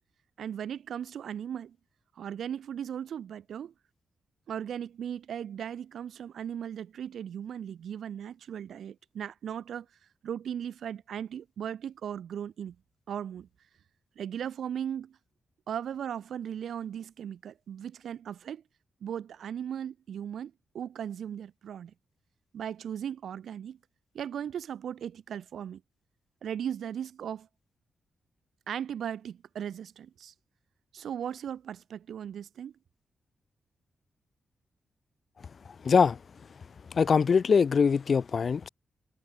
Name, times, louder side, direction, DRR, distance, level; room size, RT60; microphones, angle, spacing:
voice 1, 0.4-1.8 2.2-3.7 4.5-9.9 10.2-12.8 13.1-13.5 14.2-15.2 15.7-18.6 19.0-21.9 22.5-23.8 24.1-25.8 26.4-27.5 28.7-30.3 30.9-32.7, right 9 dB, 75° right, 2.8 m, -37 dB
voice 2, 35.9-36.2 37.0-38.7, left 6 dB, 50° left, 0.4 m, -22 dB
cardioid pair, 105°, 0 cm